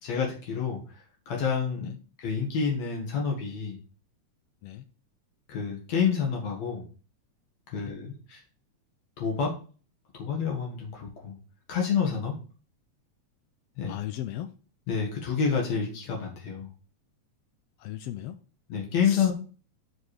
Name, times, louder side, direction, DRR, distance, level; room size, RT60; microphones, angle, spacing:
voice 1, 0.0-1.9 2.2-3.8 5.5-6.8 7.7-8.4 9.2-9.5 10.1-11.4 11.7-12.3 13.8-14.0 14.9-16.7 18.7-19.3, left 6 dB, 70° left, 0 dB, 2.8 m, -28 dB
voice 2, 13.9-14.5 17.8-18.4 19.0-19.3, left 12 dB, 85° left, 11 dB, 1.4 m, -37 dB
6.0 x 5.2 x 4.9 m, 0.37 s
omnidirectional pair, 3.3 m